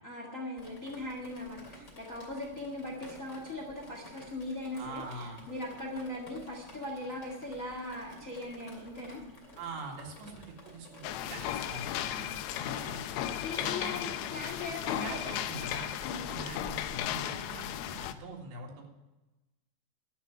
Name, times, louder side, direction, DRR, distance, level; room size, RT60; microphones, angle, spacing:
voice 1, 0.0-9.2 12.6-13.1 13.4-15.3 16.0-16.3, left 2 dB, 50° left, 1 dB, 0.9 m, -40 dB
Drip, 0.6-17.3, left 1 dB, 20° left, 2.3 m, -52 dB
voice 2, 4.8-5.4 9.6-13.1 13.6-14.2 14.9-15.9 16.3-18.9, right 2 dB, 80° right, 0 dB, 4.3 m, -44 dB
sound 1, 11.0-18.1, left 11 dB, 90° left, 3.0 m, -36 dB
sound 2, 11.5-12.5 13.2-14.2 15.0-16.0, left 14 dB, 75° left, 3.6 m, -43 dB
12.0 x 8.1 x 9.9 m, 1.1 s
omnidirectional pair, 5.0 m